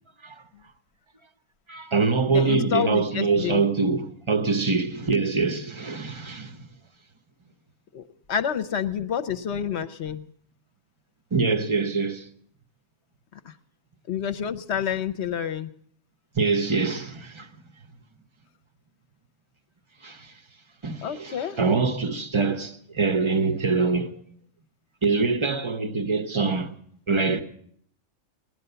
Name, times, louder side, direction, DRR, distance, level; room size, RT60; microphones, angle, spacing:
voice 1, 1.7-6.7 11.3-12.3 16.3-17.5 20.0-20.3 20.8-24.1 25.0-26.7 27.1-27.4, right 4 dB, 25° right, 0.8 m, -24 dB
voice 2, 2.3-3.6 7.9-10.3 13.3-13.5 14.1-15.7 21.0-21.6, left 8 dB, 60° left, 1.0 m, -28 dB
17.5 x 11.0 x 6.8 m
omnidirectional pair, 1.4 m